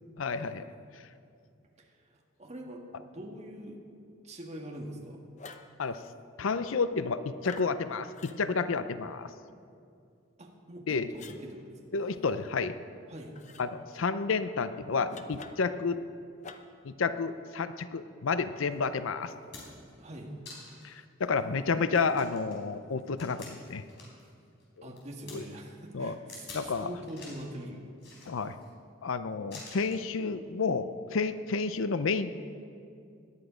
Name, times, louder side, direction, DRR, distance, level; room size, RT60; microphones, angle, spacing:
voice 1, 0.2-0.6 5.8-6.0 6.4-9.3 10.9-11.1 11.9-12.7 13.6-16.0 16.8-19.3 20.8-23.8 25.3-25.4 25.9-26.2 26.5-26.9 28.3-28.5 29.0-32.4, left 4 dB, 85° left, 12 dB, 0.6 m, -30 dB
voice 2, 1.8-3.8 4.2-5.2 10.4-11.7 13.1-13.4 20.0-20.3 24.8-27.9, right 1 dB, 35° right, 0 dB, 1.5 m, -43 dB
sound 1, 5.4-5.8 7.4-7.8 8.1-8.4 11.2-11.4 13.4-13.7 15.1-15.8 16.4-16.8, left 4 dB, 35° left, 0.7 m, -47 dB
sound 2, 18.7-18.8 19.2-19.9 20.5-20.9 21.4-21.5 21.9-24.3 24.6-25.4 26.3-26.7 27.0-27.5 28.0-28.7 29.5-30.0 31.1-31.3, left 3 dB, 60° left, 4.2 m, -48 dB
18.0 x 11.0 x 5.1 m, 2.4 s
head